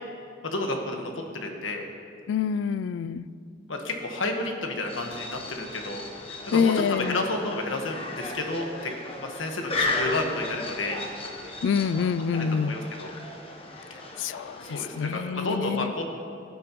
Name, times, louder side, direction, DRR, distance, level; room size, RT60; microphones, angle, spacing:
voice 1, 0.4-1.8 3.7-6.0 6.4-8.9 9.2-11.0 12.4-13.1 13.9-14.1 14.6-16.0, left 2 dB, 85° left, 2 dB, 1.4 m, -31 dB
voice 2, 2.3-3.3 6.5-7.2 11.6-12.7 14.2-15.9, left 6 dB, 70° left, 17 dB, 0.3 m, -26 dB
sound 1, 4.8-15.2, left 2 dB, 30° left, 1.1 m, -35 dB
18.5 x 9.4 x 3.1 m, 2.4 s
head